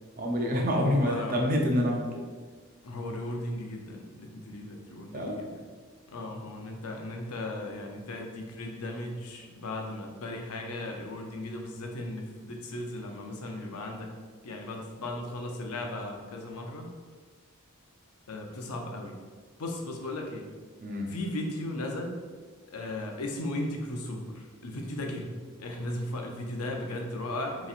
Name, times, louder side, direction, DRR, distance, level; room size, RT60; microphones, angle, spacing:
voice 1, 0.2-2.2 5.1-5.4 20.8-21.1, equal, 40° right, 0 dB, 0.6 m, -27 dB
voice 2, 0.7-1.4 2.8-5.6 6.1-14.1 14.4-16.9 18.3-19.2 19.6-20.5 21.1-22.2 22.7-25.3 25.6-27.7, left 1 dB, 90° left, 2 dB, 0.6 m, -36 dB
5.4 x 3.0 x 2.5 m, 1.5 s
head